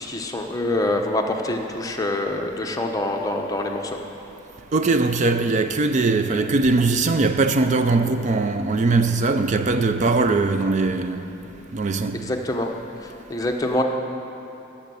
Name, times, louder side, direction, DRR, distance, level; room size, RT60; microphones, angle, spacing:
voice 1, 0.0-4.0 12.1-12.7 13.3-13.8, left 1 dB, 20° left, 0.8 m, -25 dB
voice 2, 4.7-11.2 11.7-12.2, right 3 dB, 40° right, 0.4 m, -20 dB
16.5 x 7.2 x 6.9 m
head